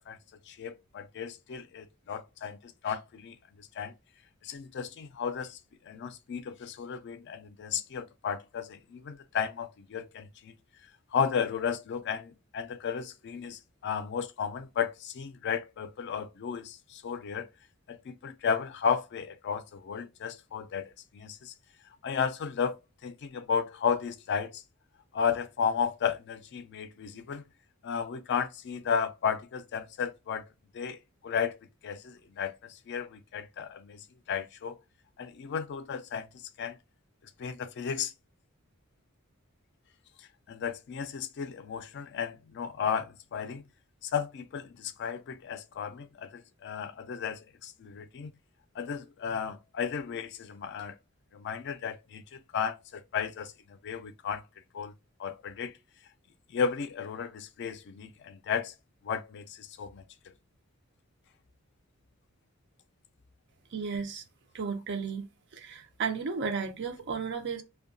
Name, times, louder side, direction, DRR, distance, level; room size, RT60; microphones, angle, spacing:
voice 1, 0.5-2.6 2.8-3.3 3.8-3.9 4.4-5.6 5.9-10.5 11.1-17.5 17.9-21.5 22.0-22.8 23.0-24.6 25.1-27.4 27.8-30.4 30.7-31.0 31.2-31.5 31.8-32.5 32.9-34.7 35.2-36.3 36.6-36.8 37.4-38.1 40.5-43.6 44.0-48.3 48.8-50.9 51.3-53.5 53.8-54.4 54.7-54.9 55.2-55.7 56.5-58.7 59.0-60.0, left 7 dB, 55° left, 0.4 m, -33 dB
voice 2, 63.7-64.2 64.5-65.3 65.5-67.6, right 5 dB, 55° right, 0.5 m, -33 dB
2.7 x 2.2 x 2.6 m
head